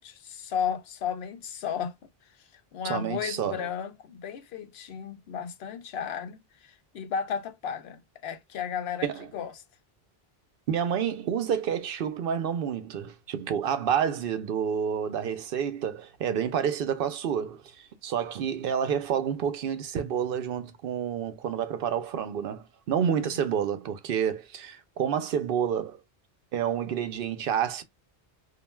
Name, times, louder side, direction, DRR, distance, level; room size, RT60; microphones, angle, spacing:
voice 1, 0.0-2.0 2.7-9.1 9.3-9.6 23.0-23.3, left 7 dB, 80° left, 0.8 m, -34 dB
voice 2, 2.8-3.7 9.0-9.3 10.7-26.0 26.5-27.8, right 8 dB, 65° right, 0.7 m, -29 dB
2.4 x 2.1 x 3.1 m
omnidirectional pair, 1.0 m